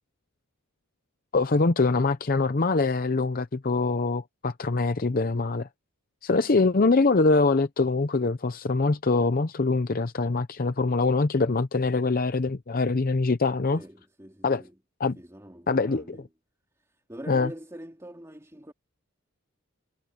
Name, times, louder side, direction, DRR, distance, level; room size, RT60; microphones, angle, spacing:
voice 1, 1.3-5.7 6.2-13.8 14.4-14.6 15.0-15.2 15.7-16.2 17.3-17.5, left 3 dB, 40° left, 0.6 m, -24 dB
voice 2, 13.7-14.8 15.1-16.2 16.8-18.7, right 1 dB, 15° right, 2.8 m, -44 dB
head